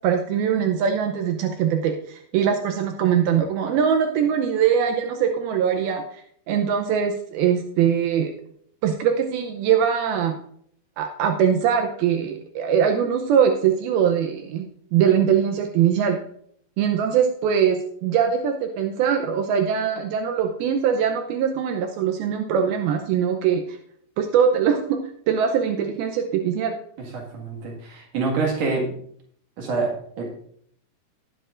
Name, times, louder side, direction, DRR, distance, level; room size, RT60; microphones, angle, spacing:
voice 1, 0.0-8.3 8.8-10.3 11.0-16.2 16.8-23.8 24.2-25.0 25.3-26.7, right 8 dB, 85° right, 5 dB, 2.1 m, -22 dB
voice 2, 27.0-28.9 29.6-30.3, right 3 dB, 50° right, -1 dB, 2.2 m, -26 dB
18.5 x 7.7 x 2.5 m, 0.65 s
omnidirectional pair, 5.2 m